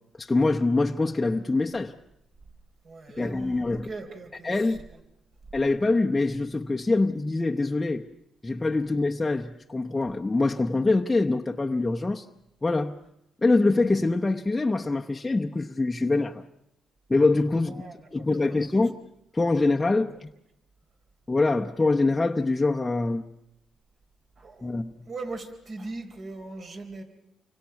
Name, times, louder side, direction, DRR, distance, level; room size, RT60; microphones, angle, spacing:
voice 1, 0.2-1.9 3.2-3.9 4.4-4.8 5.5-8.0 8.4-12.2 12.6-13.0 13.4-16.4 17.1-17.8 18.1-19.0 19.3-20.3 21.3-23.3 24.6-24.9, left 3 dB, 15° left, 0.9 m, -24 dB
voice 2, 2.8-4.5 17.7-18.3 24.4-24.7 25.0-27.0, right 3 dB, 50° right, 4.0 m, -39 dB
29.0 x 24.5 x 5.9 m
cardioid pair, 90°, 0 cm